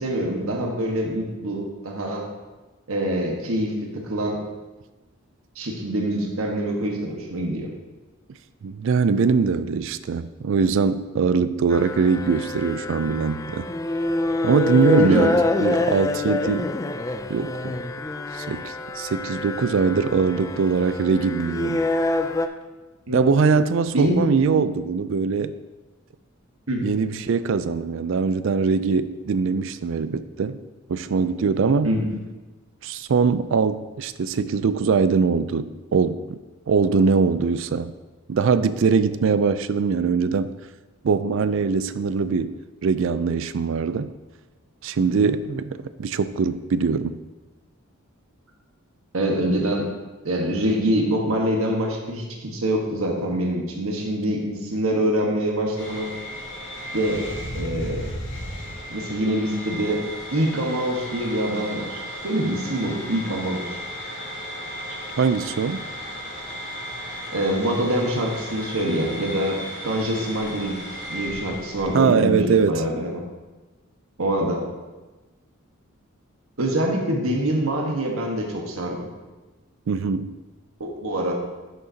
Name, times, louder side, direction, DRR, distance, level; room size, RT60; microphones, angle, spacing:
voice 1, 0.0-2.3 2.9-4.4 5.5-7.7 15.0-15.3 23.1-23.3 23.9-24.2 26.7-26.8 31.8-32.1 49.1-49.9 50.2-56.1 56.9-57.2 57.5-58.1 58.9-60.1 60.3-63.7 67.3-70.8 71.1-73.1 74.2-74.6 76.6-79.0 80.8-81.3, right 1 dB, 80° right, 0 dB, 1.3 m, -25 dB
voice 2, 8.6-13.7 14.4-15.3 15.6-16.7 17.3-17.8 18.3-21.8 23.1-25.5 26.8-30.6 30.9-31.9 32.8-36.4 36.7-37.9 38.3-40.5 41.0-42.5 42.8-44.1 44.8-47.2 65.2-65.8 71.9-72.8 79.9-80.3, right 5 dB, 65° right, 13 dB, 0.4 m, -22 dB
sound 1, 11.7-22.5, left 2 dB, 15° left, 0.3 m, -26 dB
sound 2, 55.8-72.0, equal, 60° left, 2.4 m, -35 dB
10.5 x 6.6 x 2.8 m, 1.2 s
head